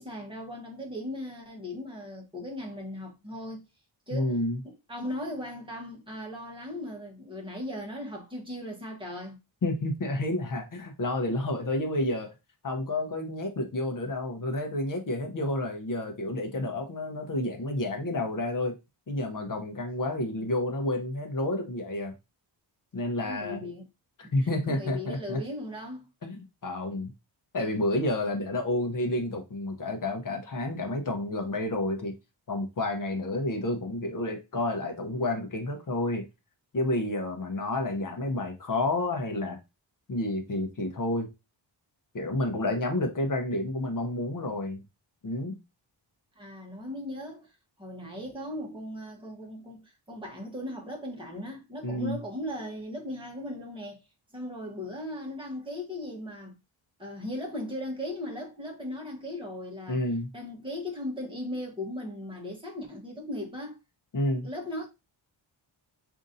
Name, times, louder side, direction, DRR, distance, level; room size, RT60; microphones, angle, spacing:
voice 1, 0.0-3.6 4.1-4.4 4.6-9.4 23.2-23.9 24.2-24.3 24.7-26.1 46.3-47.5 47.8-54.0 54.3-56.6 57.0-60.0 60.3-63.8 64.4-64.9, left 1 dB, 10° right, 1.1 m, -38 dB
voice 2, 4.1-4.6 9.6-12.3 12.6-18.7 19.1-22.1 22.9-23.6 24.3-25.4 26.2-27.1 27.5-32.1 32.5-36.2 36.7-39.6 40.1-41.3 42.1-44.8 45.2-45.6 51.8-52.2 59.9-60.3 64.1-64.5, left 1 dB, 45° left, 0.8 m, -30 dB
5.1 x 2.7 x 2.6 m
wide cardioid pair, 155°, 47 cm